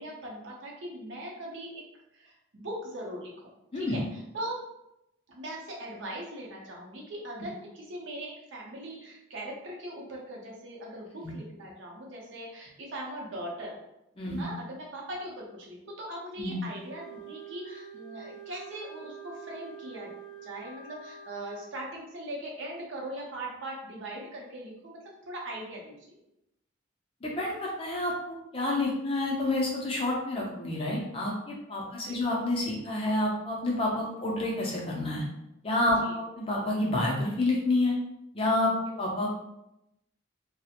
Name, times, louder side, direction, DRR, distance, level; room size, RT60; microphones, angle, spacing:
voice 1, 0.0-1.7 2.1-4.0 4.3-4.6 5.3-13.7 14.4-20.1 20.4-26.1 31.8-32.2 36.0-36.2, right 1 dB, 65° right, -3 dB, 0.6 m, -40 dB
voice 2, 14.2-14.5 16.4-16.6 27.2-35.2 35.6-38.0 38.3-39.3, left 2 dB, 25° left, -2 dB, 0.4 m, -29 dB
Wind instrument woodwind instrument, 16.8-21.7, right 7 dB, 85° left, 0.3 m, -46 dB
2.4 x 2.0 x 2.8 m, 0.86 s
head